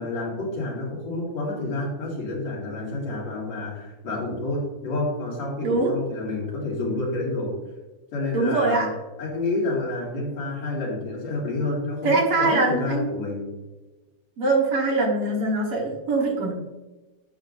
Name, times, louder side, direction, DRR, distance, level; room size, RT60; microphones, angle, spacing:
voice 1, 0.0-7.6 8.1-8.9 9.2-13.5, left 2 dB, 65° left, -4 dB, 3.6 m, -29 dB
voice 2, 8.3-8.9 12.0-13.1 14.4-16.5, right 3 dB, 55° right, -2 dB, 2.1 m, -22 dB
9.7 x 6.9 x 2.6 m, 1.1 s
omnidirectional pair, 3.4 m